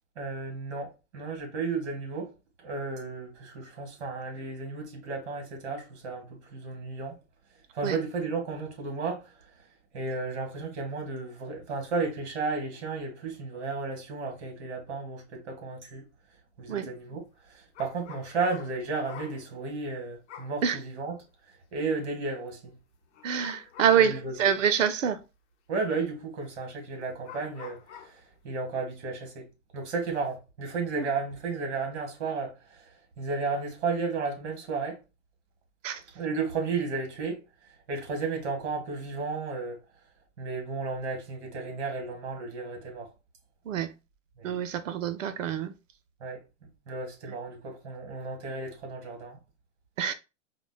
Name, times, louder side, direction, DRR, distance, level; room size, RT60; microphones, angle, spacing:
voice 1, 0.2-2.3 2.6-7.2 7.7-9.2 9.9-16.0 16.6-17.2 17.5-21.2 21.7-22.7 24.0-24.6 25.7-27.8 28.4-29.5 29.7-32.8 33.2-35.0 36.2-37.4 37.9-39.8 40.4-43.1 44.4-44.6 46.2-46.4 46.9-49.4, right 4 dB, 60° right, 1.7 m, -33 dB
sound 1, 17.7-19.5 20.3-20.6 21.2-21.3 23.1-24.1 24.8-24.9 26.6-26.7 27.2-28.2, left 9 dB, 65° left, 0.8 m, -47 dB
voice 2, 23.2-25.2 35.8-36.0 43.7-43.9 44.4-45.7 50.0-50.1, right 8 dB, 80° right, 0.6 m, -26 dB
4.8 x 2.2 x 2.2 m
hypercardioid pair, 125°, 38 cm